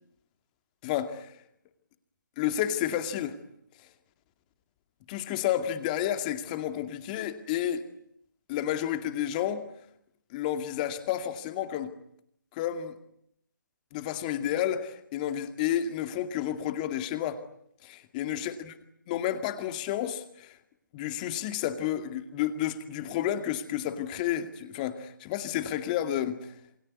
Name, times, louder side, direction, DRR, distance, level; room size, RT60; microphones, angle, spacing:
voice 1, 0.8-1.4 2.4-3.3 5.1-7.8 8.5-9.6 10.3-11.9 12.5-12.9 13.9-17.4 17.8-18.7 19.1-20.6 20.9-26.5, left 11 dB, 25° left, 9 dB, 2.2 m, -31 dB
28.0 x 22.0 x 9.6 m, 0.72 s
figure-of-eight pair, 150°, 11 cm